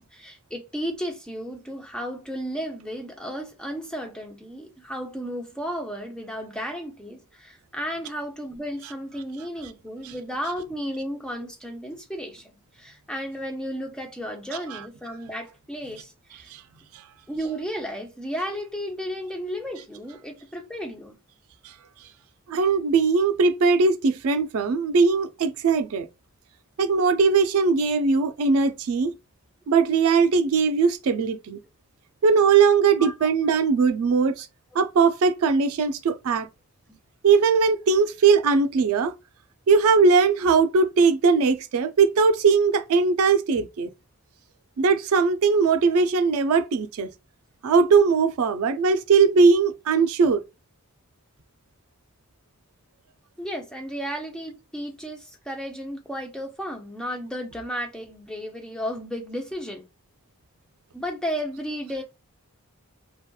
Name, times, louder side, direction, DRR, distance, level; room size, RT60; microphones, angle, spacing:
voice 1, 0.1-16.5 17.3-21.2 33.0-33.3 36.9-37.0 53.4-59.8 60.9-62.0, equal, 5° left, 0.5 m, -33 dB
voice 2, 22.5-26.1 26.8-29.1 29.7-31.6 32.2-34.5 34.7-36.5 37.2-39.1 39.7-43.9 44.8-47.1 47.6-50.4, right 5 dB, 75° right, 0.3 m, -20 dB
2.8 x 2.2 x 2.2 m
head